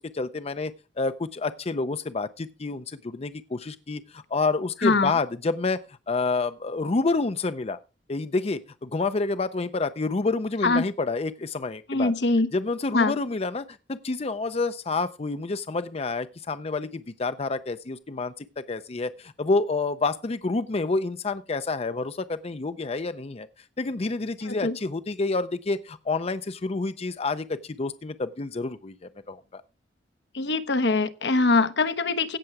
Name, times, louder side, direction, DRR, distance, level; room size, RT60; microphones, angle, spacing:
voice 1, 0.0-7.8 8.1-12.1 12.5-23.5 23.8-29.6, left 3 dB, 35° left, 0.5 m, -28 dB
voice 2, 4.8-5.1 10.6-10.8 11.9-12.5 12.9-13.1 24.5-24.8 30.3-32.4, left 3 dB, 70° left, 1.0 m, -23 dB
16.5 x 6.8 x 4.7 m
head